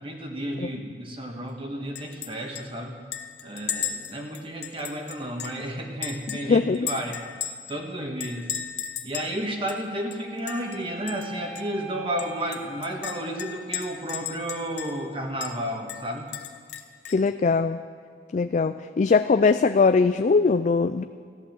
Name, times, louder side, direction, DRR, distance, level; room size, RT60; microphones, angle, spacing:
voice 1, 0.0-3.0 3.4-7.2 7.7-8.5 9.0-16.3, right 1 dB, 30° right, 2 dB, 1.4 m, -32 dB
Chink clink, 1.9-2.3 2.5-2.6 3.1-5.6 6.0-7.8 8.2-9.3 9.7-9.8 10.1-10.8 11.1-11.3 11.5-11.6 12.2-15.1 15.4-15.5 15.9-17.3, left 9 dB, 70° left, 1.0 m, -35 dB
voice 2, 6.5-6.9 17.1-17.8 18.3-21.0, left 4 dB, 45° left, 9 dB, 0.3 m, -21 dB
sound 1, 9.3-13.6, right 1 dB, 70° right, 3.2 m, -43 dB
14.5 x 11.0 x 7.4 m, 2.1 s
head